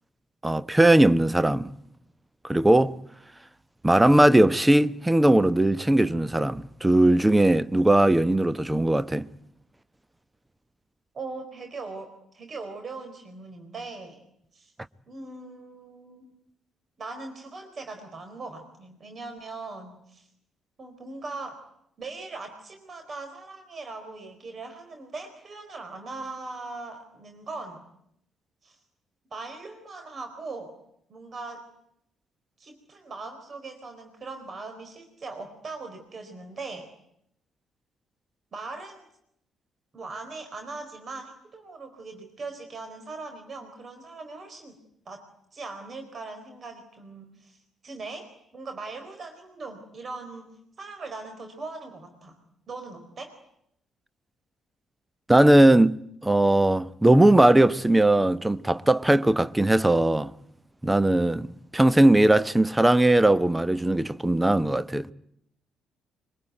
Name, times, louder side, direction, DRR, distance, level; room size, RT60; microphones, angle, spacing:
voice 1, 0.4-1.7 2.5-3.0 3.8-9.3 55.3-60.3 60.8-61.5 61.7-65.1, right 1 dB, 10° right, 1.1 m, -19 dB
voice 2, 11.1-14.2 14.5-14.7 15.1-16.3 17.0-20.3 20.8-21.6 22.0-27.8 28.6-28.8 29.3-30.7 31.1-31.7 32.6-36.9 38.5-39.1 39.9-44.8 45.1-45.2 45.5-48.3 48.5-50.5 50.8-52.4 52.7-53.4, right 3 dB, 40° right, 4.4 m, -40 dB
25.0 x 23.5 x 9.4 m
figure-of-eight pair, 45°, 0 cm